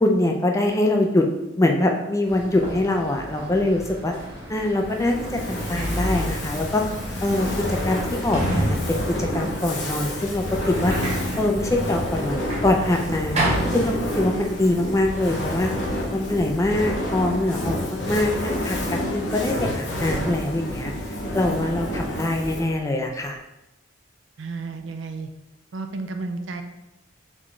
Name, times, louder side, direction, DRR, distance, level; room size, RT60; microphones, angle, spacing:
voice 1, 0.0-1.3 1.6-4.1 4.5-6.8 7.2-11.0 11.4-12.4 12.6-13.4 13.7-15.7 16.1-17.8 18.0-20.9 21.3-23.4, left 1 dB, 15° left, 3 dB, 0.3 m, -23 dB
sound 1, 2.2-9.3, equal, 55° right, 1.3 m, -39 dB
Sliding door, 4.6-4.7 5.3-14.5 14.7-15.5, right 1 dB, 35° right, 0.8 m, -29 dB
Fire, 4.9-22.8, left 1 dB, 60° left, 0.8 m, -29 dB
voice 2, 24.4-25.3 25.7-26.6, right 3 dB, 70° right, 6 dB, 0.4 m, -32 dB
4.0 x 3.5 x 3.1 m, 0.94 s
head